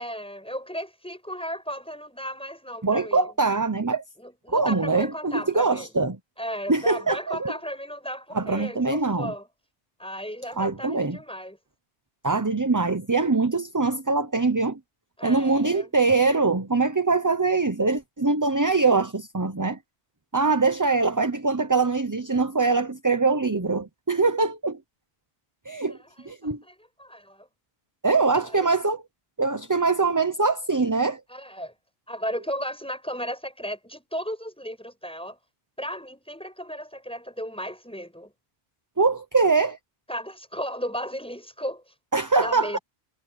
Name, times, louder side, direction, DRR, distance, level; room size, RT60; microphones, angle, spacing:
voice 1, 0.0-3.3 4.2-5.9 6.4-9.5 10.0-11.6 15.2-15.9 25.9-27.5 28.3-28.9 31.3-31.7 32.1-35.4 35.8-38.3 40.1-41.9 42.4-42.8, equal, 5° left, 6.2 m, -35 dB
voice 2, 2.8-4.0 4.5-6.2 6.7-7.5 8.3-9.3 10.6-11.2 12.2-14.8 15.2-19.8 20.3-24.8 25.7-26.0 26.3-26.6 28.0-29.0 29.4-31.2 39.0-39.8 42.1-42.8, right 3 dB, 20° right, 0.9 m, -23 dB
omnidirectional pair, 1.1 m